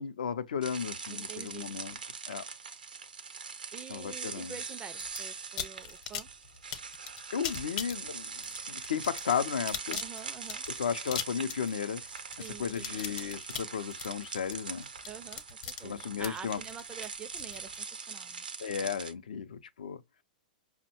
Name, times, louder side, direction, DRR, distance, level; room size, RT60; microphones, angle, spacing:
voice 1, 0.0-2.0 2.3-2.4 3.9-4.6 7.3-10.0 10.8-12.0 12.6-14.9 15.8-16.6 18.6-20.0, left 7 dB, 75° left, 0.4 m, -34 dB
sound 1, 0.6-19.1, right 5 dB, 85° right, 0.6 m, -42 dB
voice 2, 1.1-1.7 3.7-6.3 10.0-10.6 12.4-13.0 15.1-18.5, right 7 dB, 20° right, 0.3 m, -47 dB
sound 2, 5.0-5.2 5.6-17.8, left 8 dB, 55° left, 0.8 m, -39 dB
5.3 x 2.1 x 2.8 m
hypercardioid pair, 105°, 5 cm